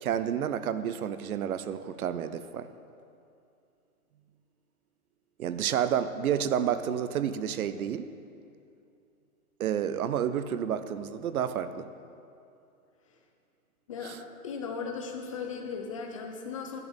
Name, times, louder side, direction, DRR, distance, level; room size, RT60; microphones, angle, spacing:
voice 1, 0.0-2.7 5.4-8.1 9.6-11.9 14.0-14.2, right 9 dB, 65° right, 12 dB, 0.7 m, -30 dB
voice 2, 14.4-16.8, left 5 dB, 20° left, 3 dB, 0.6 m, -37 dB
11.0 x 5.9 x 8.0 m, 2.6 s
hypercardioid pair, 170°, 46 cm